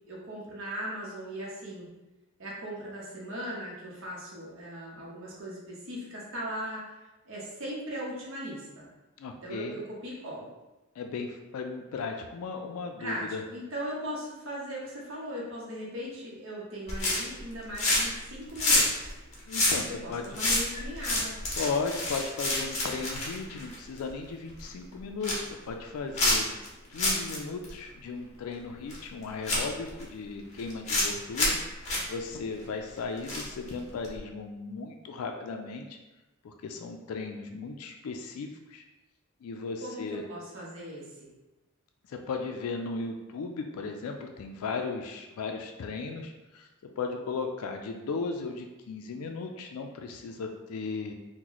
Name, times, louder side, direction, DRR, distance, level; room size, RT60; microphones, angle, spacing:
voice 1, 0.1-1.9 2.4-6.9 7.3-8.9 9.4-10.5 13.0-19.1 19.9-21.4 39.8-41.3, equal, 60° right, -5 dB, 0.8 m, -38 dB
voice 2, 9.2-9.8 11.0-13.4 19.5-20.3 21.6-26.5 26.9-31.6 32.1-35.9 36.4-38.8 39.4-40.2 42.1-51.1, left 4 dB, 85° left, 4 dB, 0.4 m, -36 dB
sound 1, 16.9-17.4 17.7-18.2 18.5-24.1 24.5-24.7 25.0-25.5 26.1-26.7 27.0-27.4 27.6-27.7 28.9-29.0 29.4-30.0 30.6-31.1 31.3-31.6 31.9-32.0 33.3-33.7 34.0-34.2, left 2 dB, 30° left, 0.7 m, -27 dB
2.9 x 2.1 x 3.8 m, 1.0 s
head